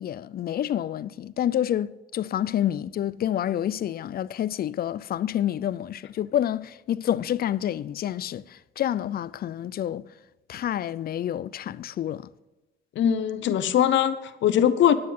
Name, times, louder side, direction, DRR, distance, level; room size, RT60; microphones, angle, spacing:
voice 1, 0.0-10.1 10.5-12.3, left 11 dB, 50° left, 0.4 m, -28 dB
voice 2, 13.0-15.0, left 10 dB, 70° left, 0.8 m, -21 dB
9.6 x 9.3 x 5.5 m
cardioid pair, 90°, 20 cm